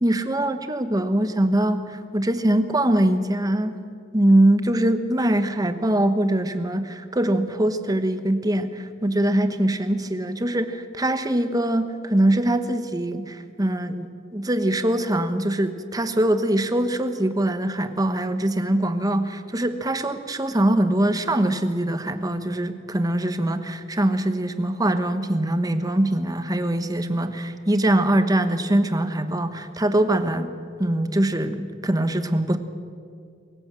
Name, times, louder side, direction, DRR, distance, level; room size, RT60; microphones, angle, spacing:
voice 1, 0.0-3.8 4.1-30.5 30.8-32.6, right 1 dB, 20° right, 9 dB, 1.1 m, -22 dB
24.0 x 16.0 x 7.6 m, 2.2 s
head